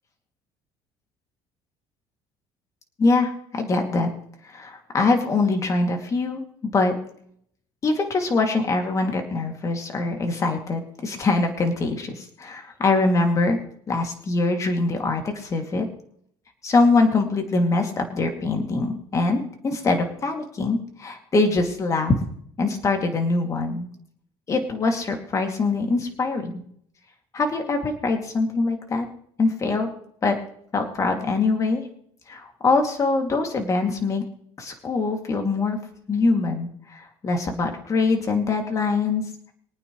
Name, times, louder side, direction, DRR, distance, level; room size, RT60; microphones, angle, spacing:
voice 1, 3.0-4.1 4.4-6.9 7.8-13.6 13.9-15.9 16.6-22.1 22.6-23.9 24.5-26.6 27.3-29.1 29.4-29.9 30.2-30.3 30.7-31.8 32.3-34.2 34.6-35.8 36.1-39.2, left 3 dB, 30° left, 3 dB, 2.7 m, -23 dB
24.0 x 9.3 x 3.3 m, 0.66 s
cardioid pair, 130°, 11 cm